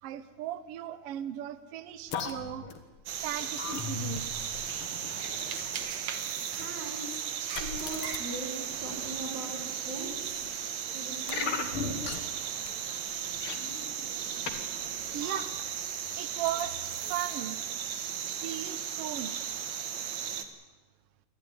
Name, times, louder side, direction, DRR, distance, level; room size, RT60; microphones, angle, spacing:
voice 1, 0.0-2.7 3.2-4.4 15.1-15.5 16.2-17.6 18.1-19.4, right 12 dB, 80° right, 13 dB, 1.3 m, -37 dB
sound 1, 2.1-5.9 6.6-6.8 7.5-8.2 8.7-9.3 10.0-10.6 11.3-12.4 12.7-12.8 13.1-14.6 14.9-15.8 16.4-17.1 17.4-17.5, left 5 dB, 50° left, 2.2 m, -39 dB
sound 2, 3.1-20.4, right 8 dB, 60° right, 2.4 m, -36 dB
voice 2, 6.5-7.2 7.6-10.4 10.9-11.6, right 2 dB, 45° right, 2 dB, 5.4 m, -40 dB
28.5 x 12.0 x 9.6 m, 1.2 s
omnidirectional pair, 3.8 m